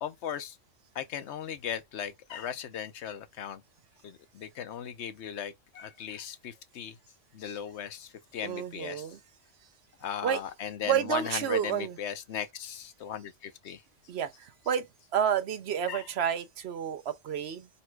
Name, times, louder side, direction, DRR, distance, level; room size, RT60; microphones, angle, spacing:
voice 1, 0.0-0.6 0.9-3.6 4.0-7.0 7.3-9.1 10.0-13.8 15.9-16.1, left 9 dB, 65° left, 1.0 m, -37 dB
voice 2, 8.4-9.2 10.2-10.4 10.8-12.0 14.1-14.9 15.1-17.7, right 9 dB, 60° right, 0.9 m, -30 dB
4.1 x 2.2 x 4.5 m
omnidirectional pair, 1.3 m